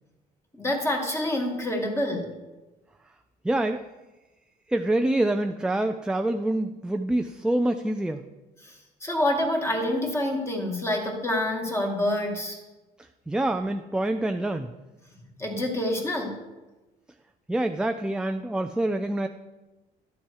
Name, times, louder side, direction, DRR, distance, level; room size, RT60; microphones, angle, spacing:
voice 1, 0.5-2.3 8.6-8.7 9.0-12.6 15.4-16.4, left 1 dB, 15° left, 1 dB, 2.1 m, -27 dB
voice 2, 3.4-3.8 4.7-8.2 13.3-14.7 17.5-19.3, right 1 dB, 5° right, 7 dB, 0.4 m, -26 dB
12.0 x 7.3 x 4.7 m, 1.1 s
cardioid pair, 110°, 17 cm